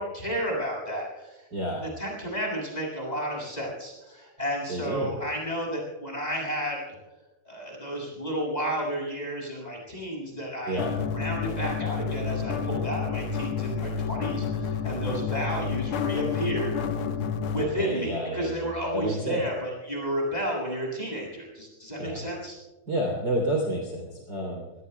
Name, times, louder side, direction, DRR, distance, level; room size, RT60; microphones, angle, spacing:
voice 1, 0.0-1.5 2.0-7.0 7.4-10.8 11.1-16.7 17.5-22.6, equal, 10° left, -3 dB, 7.1 m, -32 dB
voice 2, 1.5-1.8 4.7-5.1 10.7-11.0 17.6-18.7 18.9-19.4 22.0-22.2 22.9-24.6, right 1 dB, 30° right, 0 dB, 3.5 m, -30 dB
sound 1, 10.8-17.6, left 6 dB, 85° left, 1.2 m, -30 dB
27.0 x 20.5 x 2.3 m, 1.2 s
omnidirectional pair, 4.2 m